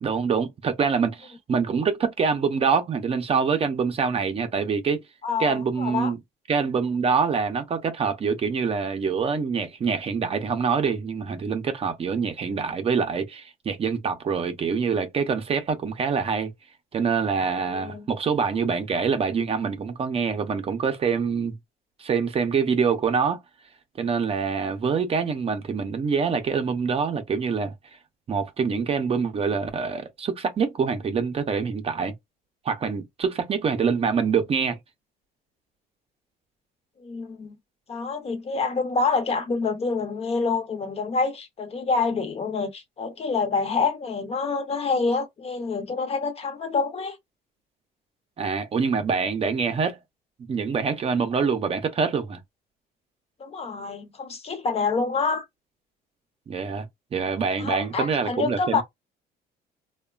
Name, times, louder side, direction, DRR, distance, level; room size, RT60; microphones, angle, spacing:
voice 1, 0.0-5.0 5.4-6.2 6.5-16.5 16.9-21.6 22.0-23.4 24.0-27.7 28.3-32.1 32.6-34.8 48.4-50.0 50.5-52.4 56.5-56.9 57.1-58.8, right 5 dB, 35° right, 0.5 m, -25 dB
voice 2, 5.2-6.1 17.4-18.1 37.0-37.5 37.9-47.2 53.4-55.5 57.6-58.8, left 4 dB, 35° left, 0.7 m, -27 dB
2.9 x 2.2 x 2.3 m
cardioid pair, 110°, 17 cm